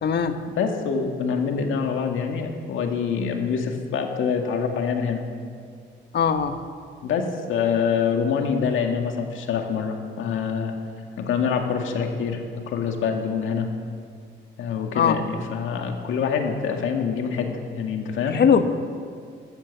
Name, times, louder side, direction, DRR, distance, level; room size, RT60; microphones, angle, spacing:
voice 1, 0.0-0.5 6.1-6.6 14.9-15.2 18.3-18.7, left 7 dB, 55° left, 9 dB, 1.2 m, -20 dB
voice 2, 0.6-5.2 7.0-10.7 11.2-13.7 14.6-18.4, left 6 dB, 80° left, 3 dB, 2.0 m, -25 dB
15.5 x 12.0 x 7.2 m, 2.2 s
cardioid pair, 90°, 20 cm